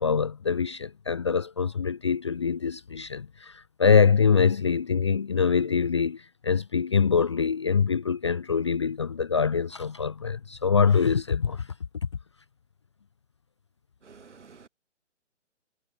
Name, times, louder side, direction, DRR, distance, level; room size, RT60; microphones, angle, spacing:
voice 1, 0.0-11.7, left 6 dB, 25° left, 0.5 m, -24 dB
voice 2, 14.0-14.7, right 5 dB, 70° right, 7.5 m, -50 dB
hypercardioid pair, 150°, 37 cm